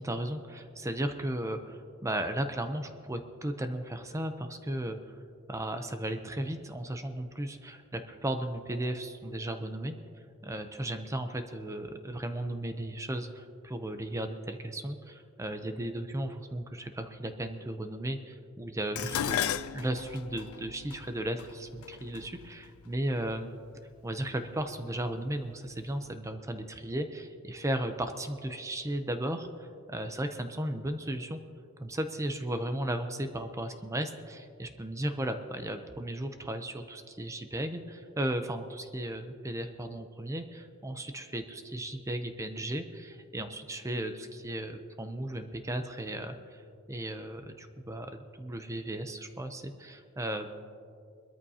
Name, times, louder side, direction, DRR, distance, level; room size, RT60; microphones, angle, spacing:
voice 1, 0.0-5.2 5.5-9.9 10.4-23.5 24.0-31.4 31.8-46.6 46.9-50.5, right 1 dB, 15° right, 7 dB, 0.6 m, -35 dB
Dishes pots and pans, 19.0-23.3 24.2-24.6 25.0-25.8 26.1-26.2, left 10 dB, 75° left, 0.4 m, -36 dB
21.5 x 13.5 x 2.8 m, 2.3 s
head